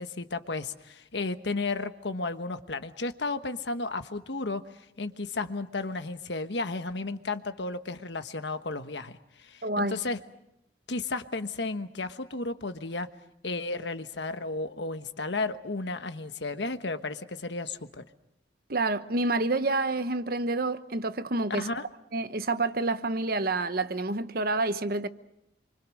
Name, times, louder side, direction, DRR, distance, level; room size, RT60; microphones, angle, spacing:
voice 1, 0.0-4.6 5.0-10.2 10.9-13.1 13.4-18.0 21.6-21.8, left 3 dB, 75° left, 1.3 m, -33 dB
voice 2, 9.6-10.0 18.7-21.7 22.1-25.1, right 2 dB, 55° right, 1.0 m, -28 dB
27.5 x 24.5 x 6.4 m
head